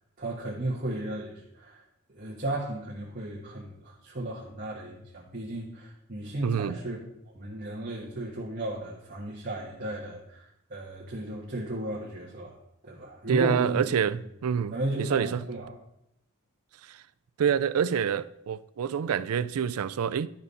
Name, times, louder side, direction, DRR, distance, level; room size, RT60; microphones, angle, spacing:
voice 1, 0.2-1.8 2.1-7.0 7.3-12.6 12.8-13.8 14.7-15.7, right 1 dB, 40° right, 1.4 m, -34 dB
voice 2, 6.4-6.8 13.3-15.4 16.9-17.0 17.4-20.3, right 7 dB, 70° right, 0.4 m, -27 dB
12.0 x 5.2 x 4.1 m
head